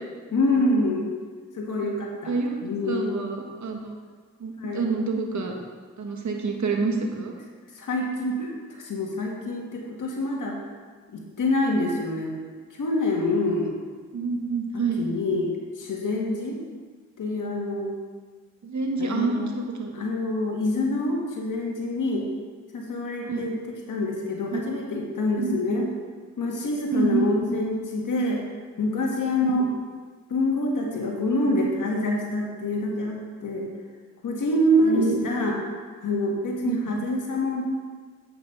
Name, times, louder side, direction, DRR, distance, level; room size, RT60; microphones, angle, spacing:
voice 1, 0.3-1.1 1.5-2.4 2.6-3.1 4.6-4.9 7.8-8.5 8.8-10.6 11.1-12.3 12.7-13.8 14.7-15.5 15.8-16.6 17.2-18.0 19.0-19.5 19.9-22.3 22.7-23.6 23.9-25.9 26.4-28.4 28.8-29.7 30.3-33.7 34.2-35.6 36.0-37.6, left 1 dB, 70° left, -1 dB, 1.9 m, -26 dB
voice 2, 2.2-2.6 2.8-3.9 4.4-5.5 6.0-7.3 14.1-15.1 18.6-19.9 23.2-23.5 24.5-24.6 25.4-25.9 26.9-27.4 29.4-29.7 34.8-35.4 36.6-36.9, right 4 dB, 60° right, 2 dB, 1.6 m, -27 dB
8.8 x 5.8 x 5.7 m, 1.5 s
supercardioid pair, 50°, 32 cm